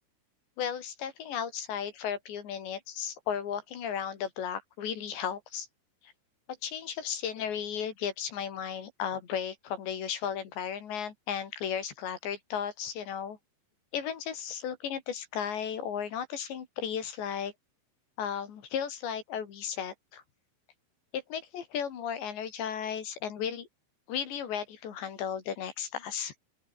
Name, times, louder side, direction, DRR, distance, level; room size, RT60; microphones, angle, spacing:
voice 1, 0.6-5.7 6.0-6.1 6.6-13.4 13.9-17.5 18.2-20.2 21.1-23.7 24.1-26.3, left 8 dB, 60° left, 4.9 m, -35 dB
open air
omnidirectional pair, 5.8 m